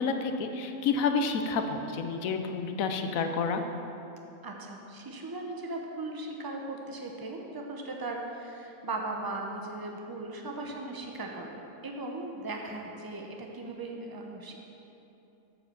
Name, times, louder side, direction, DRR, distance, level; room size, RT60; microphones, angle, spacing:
voice 1, 0.0-3.6, left 5 dB, 75° left, 6 dB, 1.1 m, -29 dB
voice 2, 4.4-14.6, right 2 dB, 20° right, 1 dB, 0.7 m, -38 dB
8.4 x 5.6 x 7.1 m, 2.9 s
omnidirectional pair, 1.4 m